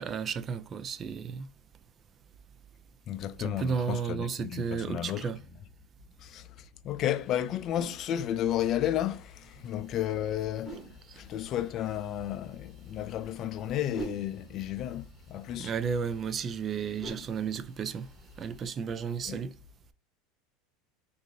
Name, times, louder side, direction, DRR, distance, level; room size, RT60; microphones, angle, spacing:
voice 1, 0.0-1.5 3.4-5.4 11.1-11.2 15.6-18.1 18.4-19.5, right 6 dB, 35° right, 0.3 m, -33 dB
voice 2, 3.1-5.3 6.2-6.5 6.8-10.8 11.2-15.7 19.3-19.4, left 11 dB, 45° left, 0.4 m, -32 dB
sound 1, 7.1-18.7, right 2 dB, 5° right, 1.8 m, -49 dB
3.8 x 2.6 x 2.6 m
supercardioid pair, 110°, 0 cm